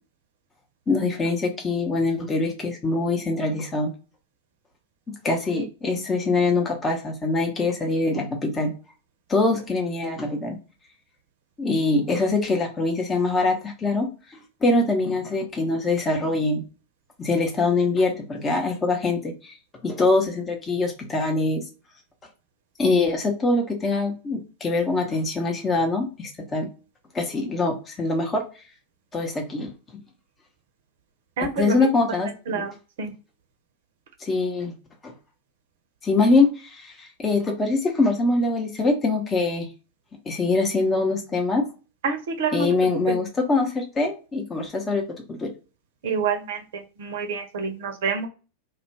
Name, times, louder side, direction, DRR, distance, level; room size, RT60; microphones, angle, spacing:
voice 1, 0.9-3.9 5.2-8.7 9.3-10.6 11.6-14.1 14.6-16.6 17.2-19.5 19.8-21.6 22.8-26.7 27.1-28.4 29.1-29.7 31.6-32.6 34.2-34.7 35.0-35.1 36.0-39.7 40.3-41.6 42.5-45.0 45.3-45.5, left 3 dB, 20° left, 2 dB, 0.7 m, -23 dB
voice 2, 31.4-31.9 32.5-33.1 42.0-42.7 43.1-43.2 46.0-48.3, right 5 dB, 55° right, 4 dB, 0.6 m, -28 dB
2.4 x 2.2 x 3.1 m, 0.33 s
figure-of-eight pair, 90°, 0 cm